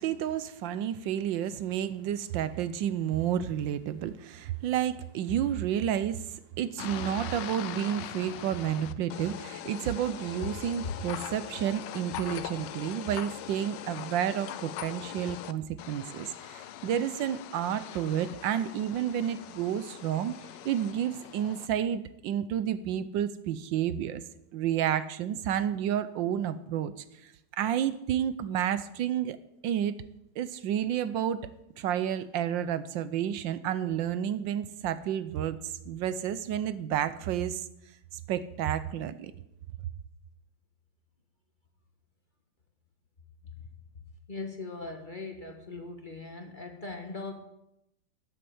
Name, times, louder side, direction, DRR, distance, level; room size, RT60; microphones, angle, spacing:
voice 1, 0.0-20.3 20.6-24.2 24.5-26.9 27.2-29.4 29.6-30.0 30.4-31.5 31.8-37.6 38.3-39.3, right 10 dB, 75° right, 14 dB, 1.3 m, -30 dB
sound 1, 6.8-15.5 15.8-21.7, left 11 dB, 75° left, 1.3 m, -41 dB
voice 2, 44.3-47.3, left 3 dB, 30° left, 4 dB, 1.4 m, -40 dB
13.0 x 7.9 x 7.8 m, 0.84 s
omnidirectional pair, 2.1 m